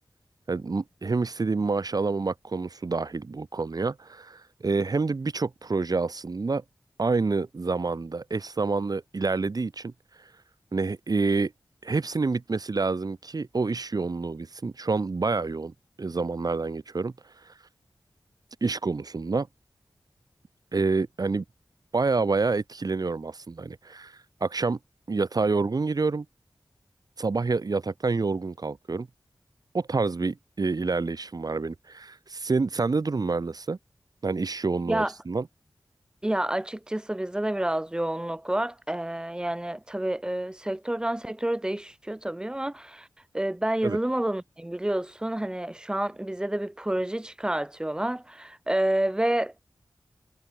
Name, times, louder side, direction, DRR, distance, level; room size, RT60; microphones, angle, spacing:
voice 1, 0.5-6.6 7.0-9.9 10.7-11.5 11.8-15.7 16.0-17.1 17.4-17.5 18.6-19.5 20.7-21.4 21.9-24.8 25.1-26.2 27.2-29.1 29.7-33.8 34.2-35.5 43.8-44.0, right 4 dB, 55° right, 1.2 m, -28 dB
voice 2, 36.2-43.1 43.3-49.5, right 1 dB, 10° right, 0.4 m, -29 dB
wide cardioid pair, 60°, 8 cm